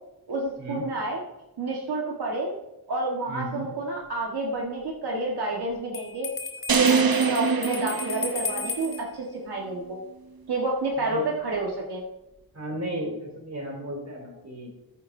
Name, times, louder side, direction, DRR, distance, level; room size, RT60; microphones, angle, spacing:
voice 1, 0.3-1.2 1.6-2.5 2.9-6.3 6.7-10.0 10.5-12.0, right 2 dB, 80° right, -2 dB, 1.6 m, -29 dB
voice 2, 3.3-3.7 11.1-11.2 12.5-14.7, right 1 dB, 40° right, 0 dB, 3.2 m, -34 dB
Bell, 5.9-9.0, left 4 dB, 35° left, 1.2 m, -34 dB
sound 1, 6.7-9.0, right 5 dB, 65° right, 1.0 m, -24 dB
14.0 x 9.2 x 2.7 m, 0.94 s
wide cardioid pair, 110°, 39 cm